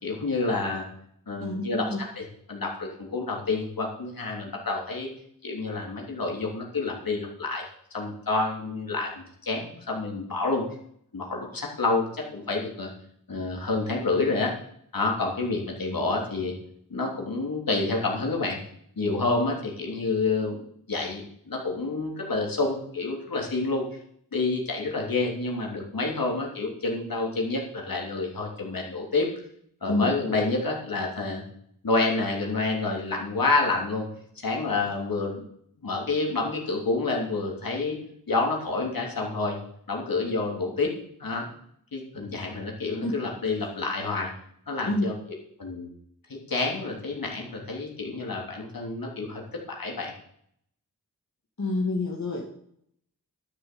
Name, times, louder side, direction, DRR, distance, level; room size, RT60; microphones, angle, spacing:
voice 1, 0.0-0.9 1.3-5.1 5.4-10.6 11.1-12.9 13.3-14.5 14.9-16.5 16.9-18.6 19.0-20.6 20.9-23.8 24.3-29.3 29.8-31.4 31.8-34.1 34.4-35.4 35.8-38.0 38.3-39.6 39.9-40.9 41.2-41.5 41.9-44.3 44.7-45.1 45.6-45.9 46.3-50.1, left 3 dB, 65° left, 0 dB, 3.3 m, -28 dB
voice 2, 1.4-2.0 29.9-30.1 43.0-43.1 44.9-45.0 51.6-52.5, left 2 dB, 50° left, -1 dB, 2.2 m, -27 dB
11.5 x 7.2 x 7.0 m, 0.68 s
cardioid pair, 45°, 36 cm